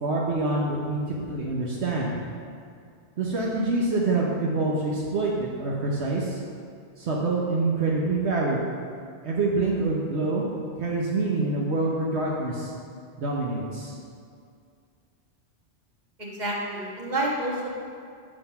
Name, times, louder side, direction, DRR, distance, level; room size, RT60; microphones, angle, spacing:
voice 1, 0.0-2.1 3.2-6.4 7.0-8.6 9.2-10.4 10.8-12.7 13.2-13.9, right 3 dB, 80° right, -4 dB, 1.2 m, -26 dB
voice 2, 16.2-17.7, right 1 dB, 40° right, -4 dB, 1.5 m, -29 dB
7.5 x 5.1 x 5.7 m, 2.2 s
omnidirectional pair, 1.1 m